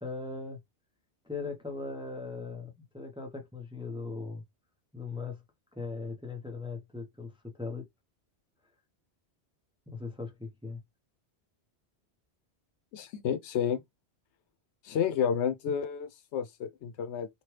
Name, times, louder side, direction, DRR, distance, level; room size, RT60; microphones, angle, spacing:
voice 1, 0.0-0.6 1.2-4.4 4.9-5.4 5.7-7.8 9.9-10.8, left 4 dB, 5° right, 0.6 m, -39 dB
voice 2, 12.9-13.8 14.8-17.3, left 8 dB, 85° left, 0.9 m, -30 dB
2.9 x 2.3 x 3.1 m
omnidirectional pair, 1.1 m